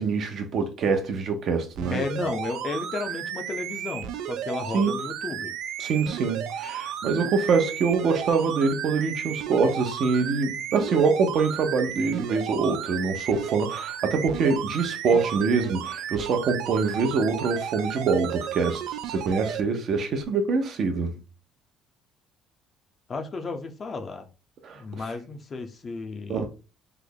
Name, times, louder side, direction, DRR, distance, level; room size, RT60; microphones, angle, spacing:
voice 1, 0.0-2.0 4.7-4.9 5.8-21.2 24.6-24.8 26.3-26.5, right 4 dB, 55° right, 0.7 m, -25 dB
sound 1, 1.7-19.6 20.2-20.3, right 10 dB, 75° right, 0.3 m, -34 dB
voice 2, 1.9-5.5 7.2-7.3 23.1-24.3 24.7-26.5, left 4 dB, 40° left, 0.5 m, -33 dB
3.3 x 2.0 x 3.8 m
cardioid pair, 100°, 0 cm